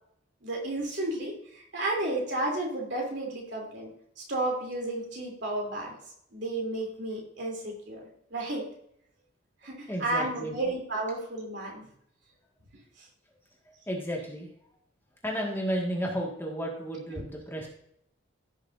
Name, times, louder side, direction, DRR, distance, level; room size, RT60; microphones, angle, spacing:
voice 1, 0.4-3.9 4.2-5.9 6.3-8.0 8.3-8.6 9.6-11.9 17.2-17.3, right 2 dB, 60° right, -1 dB, 3.2 m, -32 dB
voice 2, 9.9-10.5 13.7-14.5 15.2-17.7, equal, 10° left, -1 dB, 1.8 m, -33 dB
16.5 x 6.5 x 2.6 m, 0.70 s
head